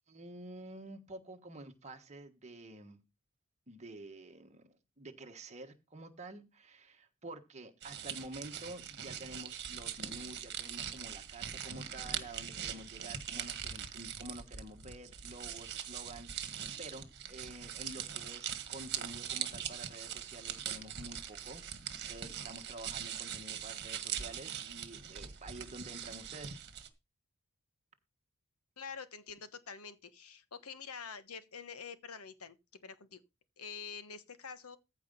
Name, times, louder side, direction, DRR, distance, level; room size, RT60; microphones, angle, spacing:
voice 1, 0.0-3.0 3.7-26.6, right 1 dB, 30° right, 1.5 m, -49 dB
sound 1, 7.8-26.9, right 9 dB, 50° right, 1.6 m, -42 dB
voice 2, 28.8-32.6 32.8-33.2 33.6-34.8, left 6 dB, 75° left, 1.2 m, -46 dB
14.5 x 4.9 x 5.6 m
head